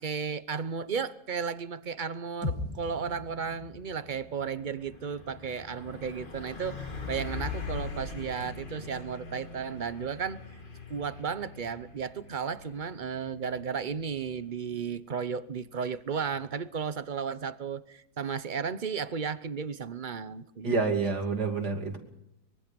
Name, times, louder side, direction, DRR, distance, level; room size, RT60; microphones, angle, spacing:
voice 1, 0.0-10.4 10.9-20.7, right 6 dB, 40° right, 0.8 m, -34 dB
sound 1, 2.4-6.8, left 2 dB, 90° left, 5.9 m, -40 dB
Truck, 3.9-16.5, left 4 dB, 35° left, 1.8 m, -42 dB
voice 2, 20.6-22.0, right 4 dB, 80° right, 3.4 m, -28 dB
24.0 x 22.5 x 5.3 m
omnidirectional pair, 1.7 m